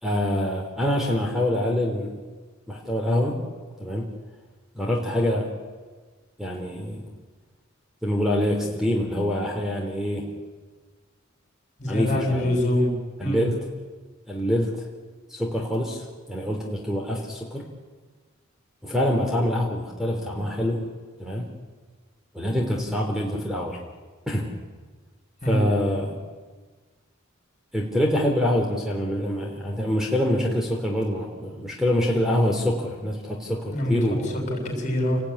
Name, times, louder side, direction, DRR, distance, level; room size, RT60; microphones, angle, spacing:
voice 1, 0.0-2.1 2.7-3.4 3.8-4.1 4.7-5.5 6.4-7.1 8.0-10.2 11.9-12.5 13.2-13.7 14.3-14.7 15.3-17.6 18.8-20.8 21.2-21.5 22.3-23.8 24.3-24.5 25.5-26.2 27.7-34.6, left 1 dB, ahead, 0 dB, 3.6 m, -25 dB
voice 2, 11.8-13.0 13.2-13.4 25.4-25.6 33.7-34.0 34.5-35.2, left 1 dB, 35° left, 3 dB, 7.1 m, -24 dB
29.0 x 19.5 x 9.9 m, 1.4 s
head